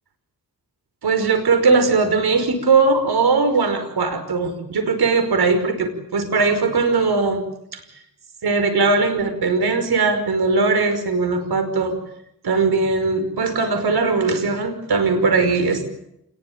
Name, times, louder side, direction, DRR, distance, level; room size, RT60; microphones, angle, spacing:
voice 1, 1.0-7.4 7.7-7.8 8.4-12.0 12.4-15.9, right 4 dB, 85° right, 8 dB, 5.4 m, -19 dB
28.0 x 21.5 x 8.9 m, 0.79 s
cardioid pair, 70°, 37 cm